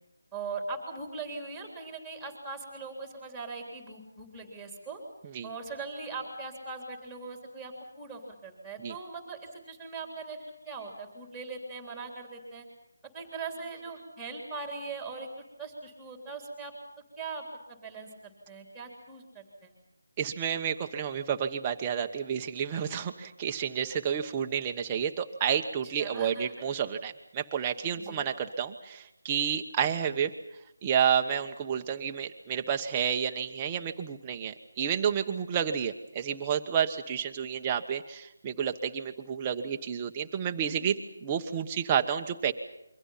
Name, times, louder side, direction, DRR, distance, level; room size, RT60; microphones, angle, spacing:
voice 1, 0.3-5.0 5.4-12.7 13.1-15.3 15.6-16.7 17.2-19.7 26.0-26.5 28.0-28.2 40.6-41.0, right 4 dB, ahead, 3 dB, 3.4 m, -40 dB
voice 2, 20.2-30.3 30.8-40.9 41.2-42.5, right 8 dB, 15° right, 5 dB, 1.1 m, -30 dB
28.5 x 23.5 x 5.7 m, 0.86 s
figure-of-eight pair, 170°, 0 cm